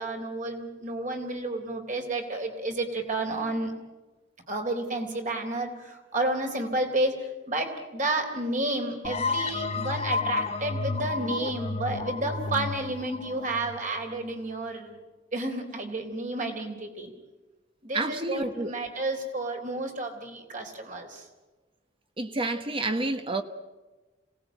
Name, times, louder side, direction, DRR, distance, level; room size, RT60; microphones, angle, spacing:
voice 1, 0.0-3.7 4.5-15.0 15.3-17.1 17.8-21.2, right 2 dB, 45° right, 3.7 m, -31 dB
sound 1, 9.0-14.5, left 4 dB, 35° left, 1.2 m, -31 dB
voice 2, 17.9-18.7 22.2-23.4, right 2 dB, 30° right, 1.2 m, -29 dB
26.5 x 18.0 x 9.2 m
head